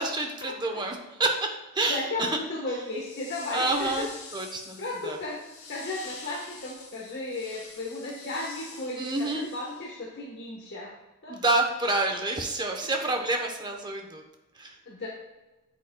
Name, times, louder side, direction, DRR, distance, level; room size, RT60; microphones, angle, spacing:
voice 1, 0.0-1.5 1.7-2.3 3.5-5.2 9.0-9.5 11.3-14.2 14.6-14.7, right 2 dB, 20° right, 3 dB, 0.9 m, -28 dB
voice 2, 1.9-4.1 4.8-10.9 11.2-11.3 14.9-15.1, left 2 dB, 50° left, -4 dB, 1.2 m, -35 dB
sound 1, 2.8-10.0, left 4 dB, 80° left, 2.5 m, -46 dB
8.2 x 8.2 x 2.3 m, 1.1 s
head